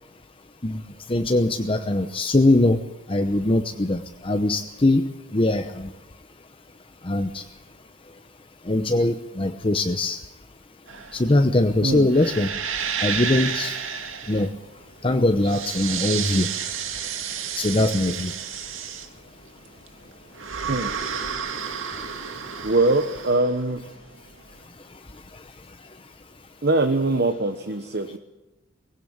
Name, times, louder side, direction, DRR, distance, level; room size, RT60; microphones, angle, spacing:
voice 1, 1.1-2.8 3.1-5.9 7.0-7.4 8.7-10.2 11.1-12.5 13.0-13.8 14.3-14.5 15.0-16.5 17.6-18.3, left 2 dB, 25° left, 7 dB, 0.9 m, -21 dB
sound 1, 10.9-24.5, right 7 dB, 85° right, 2.1 m, -31 dB
voice 2, 22.6-23.8 26.6-28.2, right 2 dB, 55° right, 9 dB, 1.1 m, -22 dB
19.5 x 17.0 x 8.8 m, 1.0 s
head